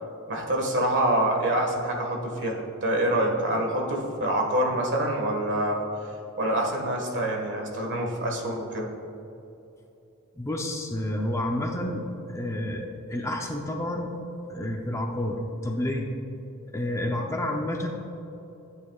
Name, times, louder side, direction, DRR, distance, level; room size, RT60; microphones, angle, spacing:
voice 1, 0.3-5.8 6.4-8.9, right 1 dB, 55° right, 0 dB, 1.6 m, -26 dB
voice 2, 10.3-14.1 14.5-16.1 16.7-17.9, left 1 dB, 15° left, 1 dB, 0.6 m, -30 dB
14.0 x 8.5 x 2.4 m, 2.9 s
head